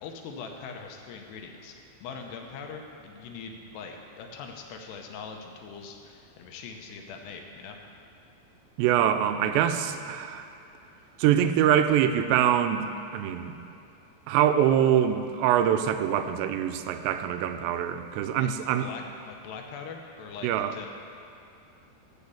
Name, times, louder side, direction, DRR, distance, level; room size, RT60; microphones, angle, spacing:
voice 1, 0.0-1.7 2.0-7.8 18.4-18.5 18.8-20.9, left 5 dB, 80° left, 3 dB, 2.8 m, -42 dB
voice 2, 8.8-10.5 11.2-13.6 14.3-18.9 20.4-20.7, right 10 dB, 85° right, 9 dB, 2.8 m, -24 dB
13.5 x 5.0 x 7.0 m, 2.7 s
omnidirectional pair, 5.0 m